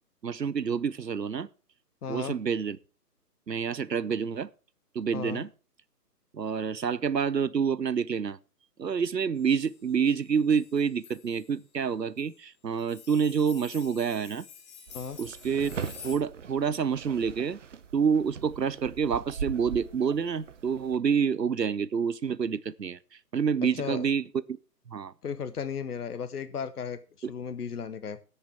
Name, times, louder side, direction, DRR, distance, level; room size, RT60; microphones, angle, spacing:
voice 1, 0.2-1.5 2.1-2.8 3.5-4.5 4.9-5.5 6.3-8.4 8.8-14.5 15.2-15.8 16.0-17.6 17.9-23.0 23.3-24.6 24.9-25.1, right 6 dB, 90° right, 0.7 m, -28 dB
voice 2, 2.0-2.4 5.1-5.5 14.9-15.2 23.8-24.1 25.2-28.2, left 6 dB, 65° left, 0.9 m, -35 dB
sound 1, 9.4-11.5 12.2-12.3 12.7-16.2, left 7 dB, 15° left, 1.3 m, -49 dB
sound 2, 14.9-21.0, right 6 dB, 50° right, 0.6 m, -41 dB
19.5 x 6.7 x 3.5 m
figure-of-eight pair, 135°, 48 cm